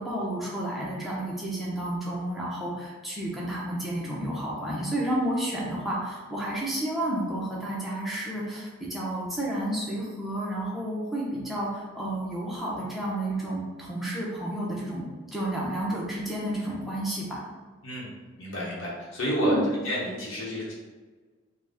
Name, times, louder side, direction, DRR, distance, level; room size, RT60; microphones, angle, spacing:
voice 1, 0.0-15.1 15.3-17.4 19.4-19.6, right 1 dB, ahead, -6 dB, 0.7 m, -31 dB
voice 2, 18.4-19.6 19.8-20.7, equal, 65° left, -6 dB, 1.0 m, -30 dB
3.9 x 2.2 x 3.5 m, 1.4 s
head